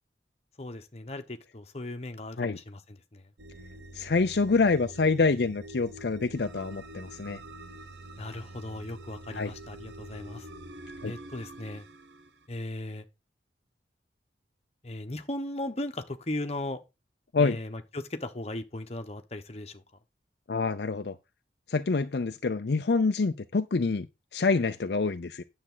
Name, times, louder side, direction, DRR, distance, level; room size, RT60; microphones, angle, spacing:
voice 1, 0.6-2.8 3.1-3.2 8.2-10.5 11.0-11.8 12.5-13.0 14.8-16.8 17.4-19.8, left 1 dB, 35° left, 1.1 m, -37 dB
sound 1, 3.4-12.5, right 1 dB, 75° right, 0.9 m, -46 dB
voice 2, 3.9-7.4 9.3-9.5 11.0-11.1 17.3-17.6 20.5-21.1 21.7-24.1 24.3-25.4, left 4 dB, 60° left, 0.5 m, -26 dB
9.9 x 7.3 x 3.9 m
head